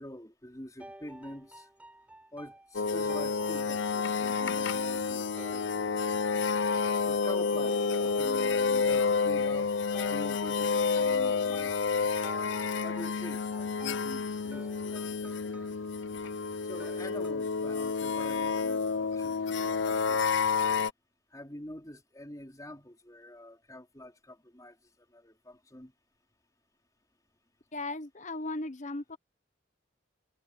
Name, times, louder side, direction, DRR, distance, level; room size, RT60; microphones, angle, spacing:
voice 1, 0.0-1.7 2.3-5.9 7.1-12.0 12.8-15.6 16.6-20.2 21.3-24.8 25.1-25.9, left 1 dB, 20° left, 4.5 m, -46 dB
sound 1, 0.8-6.6 7.2-8.9 9.9-17.3, right 1 dB, 10° right, 3.7 m, -52 dB
sound 2, 2.7-20.9, left 5 dB, 75° left, 0.6 m, -29 dB
voice 2, 27.7-29.2, left 2 dB, 40° left, 1.0 m, -36 dB
head